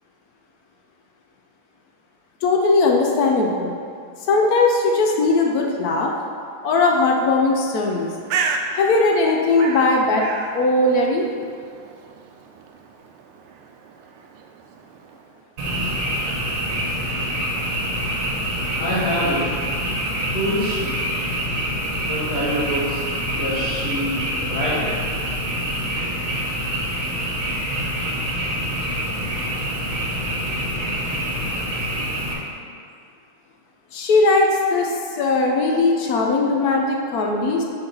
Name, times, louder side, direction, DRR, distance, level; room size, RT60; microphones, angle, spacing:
voice 1, 2.4-3.7 4.3-6.1 6.6-8.1 8.7-10.2 10.5-11.3 33.9-37.6, left 3 dB, 70° left, 0 dB, 0.9 m, -19 dB
Bird, 7.8-15.4, right 5 dB, 80° right, 1.4 m, -33 dB
Frog, 15.6-32.3, equal, 45° right, 1.4 m, -26 dB
voice 2, 18.8-19.7 20.2-21.0 22.1-25.0, equal, 50° left, -13 dB, 2.3 m, -26 dB
6.8 x 4.1 x 5.4 m, 2.2 s
omnidirectional pair, 2.4 m